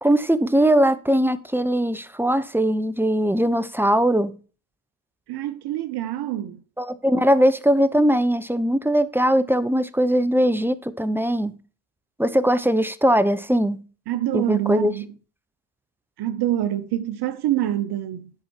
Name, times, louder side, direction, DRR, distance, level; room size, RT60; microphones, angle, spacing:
voice 1, 0.0-4.4 6.8-11.6 12.2-13.8 14.3-14.9, equal, 5° right, 0.9 m, -20 dB
voice 2, 5.3-6.6 14.1-15.1 16.2-18.3, right 13 dB, 55° right, 0.9 m, -26 dB
10.5 x 5.6 x 4.5 m
hypercardioid pair, 50°, 46 cm